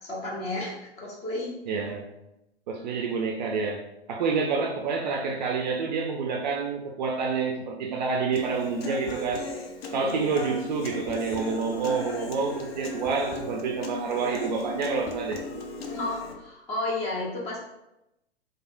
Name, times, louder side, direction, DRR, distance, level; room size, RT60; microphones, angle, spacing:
voice 1, 0.0-1.5 9.9-10.2 15.9-17.6, left 2 dB, 20° left, -3 dB, 0.8 m, -32 dB
voice 2, 1.7-2.1 2.7-9.5 9.9-15.4, right 5 dB, 45° right, 1 dB, 0.4 m, -28 dB
Human voice / Acoustic guitar, 8.3-16.3, left 3 dB, 65° left, 0.6 m, -37 dB
3.2 x 2.4 x 2.5 m, 0.89 s
figure-of-eight pair, 105°, 33 cm